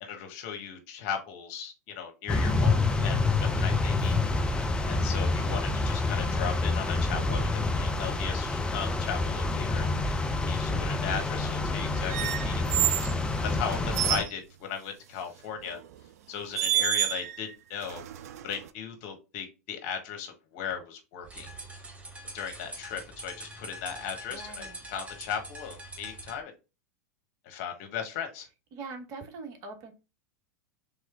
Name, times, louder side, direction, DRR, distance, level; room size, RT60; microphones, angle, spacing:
voice 1, 0.0-4.2 4.9-9.9 10.5-13.1 13.4-15.8 16.3-18.0 18.4-21.5 22.3-26.5 27.4-28.5, left 7 dB, 50° left, 4 dB, 1.2 m, -37 dB
sound 1, 2.3-14.2, left 3 dB, 10° left, 0.6 m, -27 dB
voice 2, 3.5-3.8 24.3-24.8 28.7-29.9, right 4 dB, 45° right, 5 dB, 1.0 m, -43 dB
sound 2, 12.1-13.1 13.7-14.3 15.7-15.9 16.5-17.4 17.8-18.7, right 13 dB, 65° right, 0.4 m, -29 dB
sound 3, 21.2-26.4, right 1 dB, 15° right, 0.9 m, -44 dB
3.6 x 3.1 x 3.6 m, 0.29 s
hypercardioid pair, 95°, 9 cm